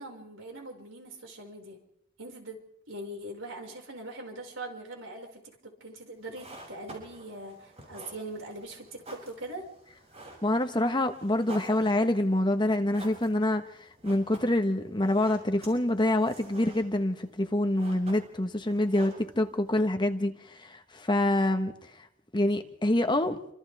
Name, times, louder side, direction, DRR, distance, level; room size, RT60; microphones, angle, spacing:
voice 1, 0.0-1.8 2.2-2.6 2.9-9.7, right 1 dB, 85° right, 5.8 m, -42 dB
sound 1, 6.2-19.8, right 2 dB, 35° right, 7.4 m, -50 dB
voice 2, 10.4-13.6 14.0-20.3 20.6-21.7 22.3-23.4, left 1 dB, 25° left, 1.4 m, -26 dB
28.5 x 26.0 x 3.6 m
head